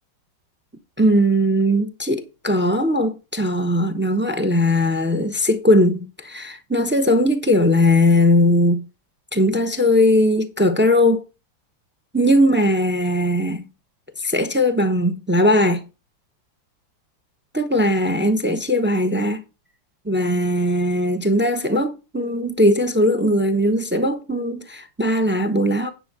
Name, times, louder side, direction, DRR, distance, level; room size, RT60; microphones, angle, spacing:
voice 1, 1.0-8.8 9.3-11.2 12.1-13.6 14.2-15.8 17.5-19.4 20.0-25.9, left 1 dB, 15° right, 0.4 m, -19 dB
10.5 x 5.5 x 5.5 m
omnidirectional pair, 2.0 m